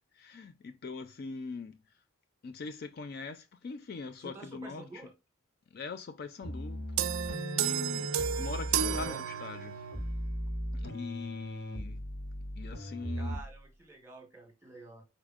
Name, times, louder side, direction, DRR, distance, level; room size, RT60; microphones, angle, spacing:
voice 1, 0.1-2.0 2.4-5.1 5.7-9.9 10.7-12.0 12.6-13.4, left 4 dB, 50° left, 0.3 m, -42 dB
voice 2, 4.2-5.1 8.7-9.2 13.1-15.0, right 3 dB, 15° right, 1.3 m, -48 dB
sound 1, 6.4-13.6, equal, 80° left, 2.7 m, -38 dB
sound 2, 7.0-10.0, right 9 dB, 80° right, 0.4 m, -32 dB
4.8 x 4.3 x 2.4 m
head